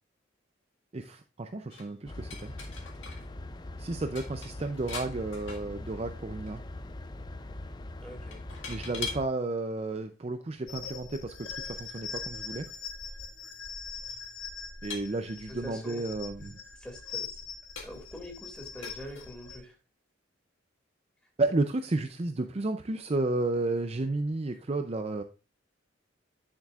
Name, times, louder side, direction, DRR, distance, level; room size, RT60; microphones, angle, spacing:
voice 1, 0.9-2.5 3.8-6.6 8.7-12.7 14.8-16.5 21.4-25.2, right 2 dB, 35° right, 7 dB, 0.5 m, -32 dB
sound 1, 1.7-3.3 3.6-3.7 4.0-6.1 6.5-6.8 8.3-9.3 10.2-10.3 12.7-12.8 13.0-13.2 14.0-14.1 14.9-15.8 16.4-16.5 17.1-17.2 17.8-18.2 18.8-19.3, left 5 dB, 85° left, 1.8 m, -43 dB
sound 2, 2.1-9.3, left 1 dB, 20° left, 0.4 m, -42 dB
voice 2, 8.0-8.4 15.5-16.0 16.8-17.5 17.8-19.8, left 1 dB, 5° left, 2 dB, 2.4 m, -44 dB
sound 3, 10.7-19.6, left 5 dB, 70° left, 1.3 m, -42 dB
9.9 x 7.4 x 2.4 m, 0.29 s
head